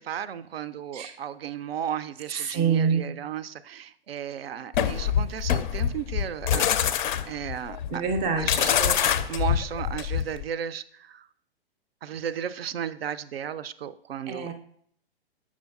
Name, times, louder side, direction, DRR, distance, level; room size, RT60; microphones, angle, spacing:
voice 1, 0.0-7.0 7.3-8.0 8.4-11.3 12.0-14.5, right 9 dB, 70° right, 14 dB, 0.4 m, -34 dB
voice 2, 2.3-3.0 7.9-8.7 14.3-14.5, right 6 dB, 20° right, 8 dB, 0.5 m, -26 dB
sound 1, 4.7-10.4, left 9 dB, 50° left, 0.4 m, -25 dB
7.2 x 6.1 x 2.3 m, 0.63 s
figure-of-eight pair, 110°, 31 cm